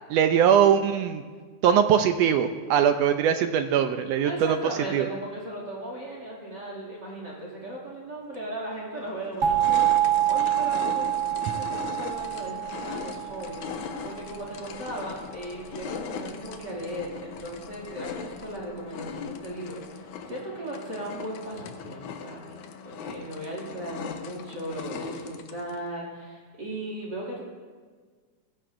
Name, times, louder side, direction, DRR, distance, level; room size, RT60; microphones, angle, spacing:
voice 1, 0.1-1.2 1.6-4.6 4.9-5.1, right 8 dB, 80° right, 8 dB, 1.5 m, -21 dB
voice 2, 4.2-13.6 14.0-22.6 22.8-27.4, right 1 dB, 35° right, -3 dB, 2.8 m, -37 dB
sound 1, 8.3-8.4 9.0-25.8, left 6 dB, 85° left, 2.3 m, -39 dB
sound 2, 9.4-14.2, right 12 dB, 55° right, 0.9 m, -26 dB
20.0 x 15.0 x 2.6 m, 1.6 s
omnidirectional pair, 3.4 m